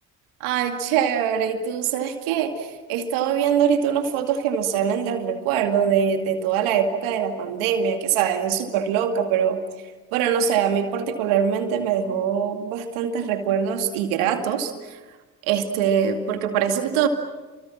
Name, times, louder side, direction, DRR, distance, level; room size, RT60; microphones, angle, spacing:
voice 1, 0.4-9.6 10.1-15.0 15.4-17.1, right 8 dB, 80° right, 6 dB, 2.5 m, -23 dB
28.5 x 25.0 x 7.4 m, 1.3 s
hypercardioid pair, 50°, 48 cm